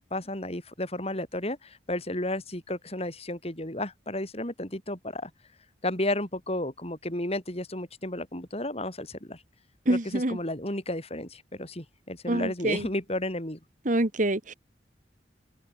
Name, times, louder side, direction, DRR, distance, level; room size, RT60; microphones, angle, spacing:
voice 1, 0.0-5.3 5.8-9.4 9.9-13.6, left 1 dB, 35° left, 5.0 m, -33 dB
voice 2, 9.9-10.4 12.3-12.8 13.8-14.5, right 1 dB, 45° right, 1.6 m, -26 dB
head